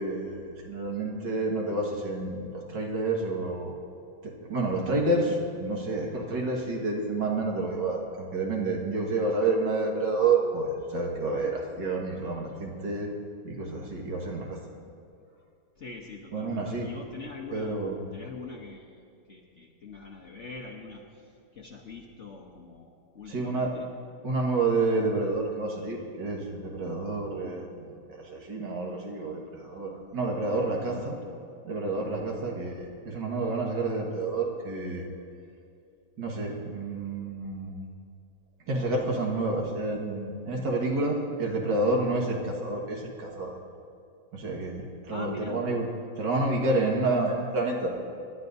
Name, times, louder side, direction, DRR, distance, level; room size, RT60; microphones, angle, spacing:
voice 1, 0.0-3.7 4.4-13.1 13.4-14.6 16.3-16.9 17.5-18.0 23.3-23.7 24.2-31.2 31.6-35.0 36.2-37.8 38.7-43.5 44.3-45.9 46.2-48.0, right 2 dB, 65° right, -1 dB, 2.3 m, -29 dB
voice 2, 15.8-19.0 19.3-23.9 30.9-31.3 45.1-45.6, left 3 dB, 45° left, -1 dB, 1.0 m, -43 dB
26.5 x 11.5 x 2.6 m, 2.4 s
omnidirectional pair, 2.1 m